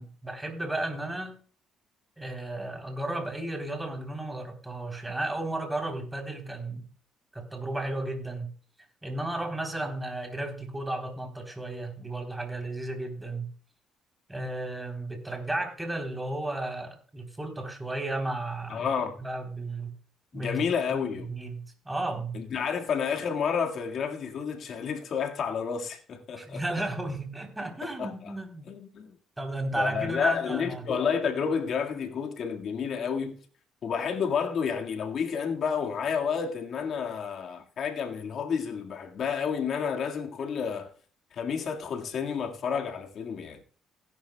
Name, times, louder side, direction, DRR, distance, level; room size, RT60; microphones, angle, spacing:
voice 1, 0.0-1.3 2.2-6.9 7.3-8.5 9.0-13.5 14.3-18.9 19.2-19.9 20.3-20.6 21.3-22.4 26.4-28.7 29.4-30.9, right 2 dB, 10° right, 3.5 m, -33 dB
voice 2, 18.7-19.2 20.3-21.3 22.3-26.6 28.0-28.3 28.7-29.2 29.8-33.4 33.8-40.9 41.3-43.6, left 6 dB, 55° left, 1.9 m, -30 dB
17.0 x 10.5 x 2.3 m
cardioid pair, 95°, 0 cm